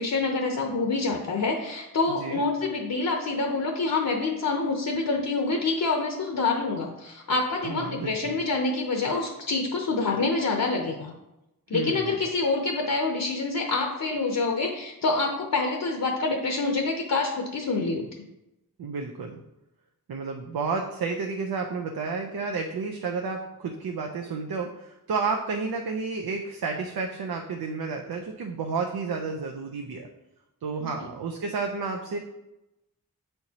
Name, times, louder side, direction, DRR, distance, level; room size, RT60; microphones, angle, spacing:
voice 1, 0.0-11.1 11.7-18.1 30.8-30.9, left 3 dB, 65° left, 2 dB, 0.8 m, -26 dB
voice 2, 2.1-2.4 7.6-8.3 11.7-12.2 18.8-19.4 20.1-30.1 30.6-32.2, right 4 dB, 80° right, 2 dB, 0.6 m, -31 dB
7.7 x 4.5 x 2.8 m, 0.94 s
wide cardioid pair, 95°, 36 cm